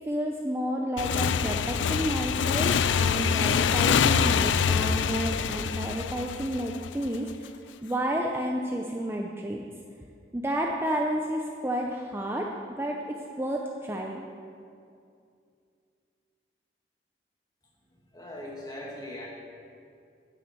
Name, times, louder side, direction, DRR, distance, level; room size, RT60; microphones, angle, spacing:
voice 1, 0.1-7.5 7.8-9.7 10.3-12.5 12.8-14.3, equal, 15° right, 0 dB, 0.6 m, -31 dB
Motorcycle / Engine, 1.0-7.3, left 7 dB, 90° left, 0.4 m, -25 dB
voice 2, 17.8-19.3, left 1 dB, 20° left, -2 dB, 1.9 m, -41 dB
10.5 x 7.6 x 8.0 m, 2.4 s
head